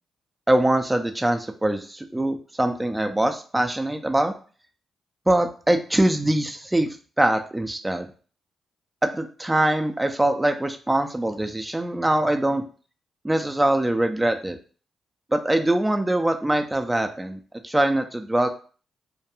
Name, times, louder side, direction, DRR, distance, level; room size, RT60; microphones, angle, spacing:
voice 1, 0.5-4.3 5.3-8.1 9.0-12.6 13.2-14.6 15.3-18.5, right 1 dB, 15° right, 5 dB, 0.3 m, -23 dB
2.2 x 2.2 x 2.9 m, 0.39 s
cardioid pair, 60°, 0 cm